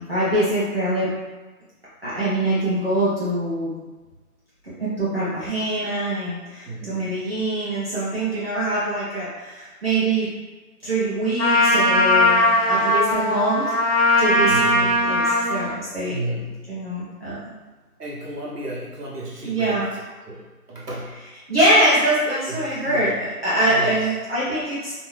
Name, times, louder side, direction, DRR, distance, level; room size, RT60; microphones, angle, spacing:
voice 1, 0.1-1.1 2.0-3.7 4.8-10.3 10.8-13.7 14.2-16.2 16.7-17.5 19.4-19.9 21.5-24.9, right 1 dB, 40° right, -11 dB, 0.8 m, -23 dB
voice 2, 6.7-7.1 14.4-14.9 16.0-16.6 18.0-21.2 22.5-23.1 23.7-24.1, right 1 dB, 85° right, -4 dB, 1.1 m, -33 dB
Trumpet, 11.4-15.7, left 1 dB, 55° left, 0.7 m, -19 dB
2.6 x 2.1 x 3.1 m, 1.2 s
figure-of-eight pair, 170°, 46 cm